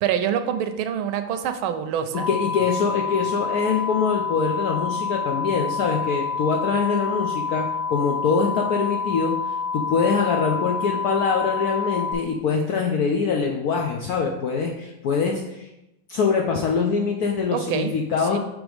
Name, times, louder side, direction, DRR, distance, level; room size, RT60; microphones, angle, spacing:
voice 1, 0.0-2.3 17.5-17.9 18.3-18.4, right 9 dB, 85° right, 9 dB, 1.4 m, -25 dB
sound 1, 2.1-12.1, left 5 dB, 25° left, 1.5 m, -28 dB
voice 2, 2.3-9.3 9.7-15.7 16.1-18.4, left 5 dB, 75° left, 1 dB, 0.8 m, -24 dB
6.1 x 3.5 x 4.9 m, 0.91 s
omnidirectional pair, 2.2 m